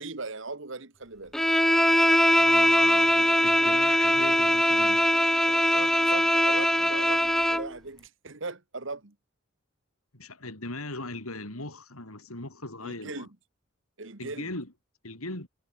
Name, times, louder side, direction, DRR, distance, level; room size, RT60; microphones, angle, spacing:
voice 1, 0.0-1.4 5.4-9.1 12.8-13.4 14.0-14.5, right 3 dB, 60° right, 1.6 m, -39 dB
Bowed string instrument, 1.3-7.7, left 1 dB, ahead, 0.4 m, -22 dB
voice 2, 2.3-5.1 10.1-13.3 14.2-14.7 15.0-15.5, left 2 dB, 85° left, 5.7 m, -38 dB
head